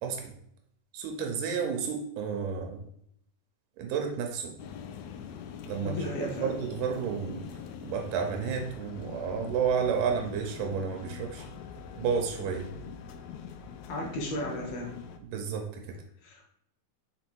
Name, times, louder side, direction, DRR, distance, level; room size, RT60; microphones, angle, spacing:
voice 1, 0.0-0.3 0.9-2.8 3.8-4.6 5.7-7.5 7.8-11.4 12.0-12.7 15.3-15.8, right 6 dB, 85° right, 3 dB, 2.3 m, -31 dB
sound 1, 4.6-15.2, left 7 dB, 85° left, 1.5 m, -43 dB
voice 2, 5.8-6.6 13.9-14.9 16.2-16.4, left 1 dB, 60° left, 0 dB, 2.1 m, -35 dB
5.7 x 4.5 x 4.6 m, 0.73 s
omnidirectional pair, 3.8 m